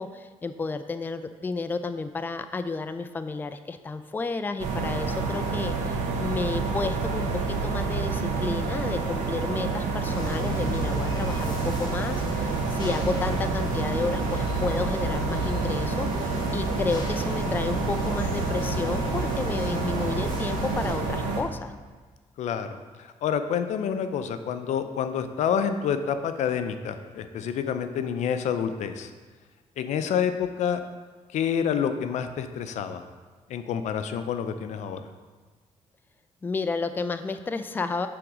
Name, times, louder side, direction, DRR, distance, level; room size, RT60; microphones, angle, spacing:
voice 1, 0.0-21.7 36.4-38.1, left 4 dB, 15° left, 9 dB, 0.3 m, -31 dB
sound 1, 4.6-21.4, right 4 dB, 90° right, 0.8 m, -28 dB
sound 2, 10.0-20.9, left 1 dB, 35° left, 1.3 m, -35 dB
voice 2, 22.4-29.1 29.8-30.8 31.3-33.0 33.5-35.0, left 7 dB, 75° left, 9 dB, 0.5 m, -28 dB
7.7 x 3.6 x 5.0 m, 1.4 s
cardioid pair, 95°, 12 cm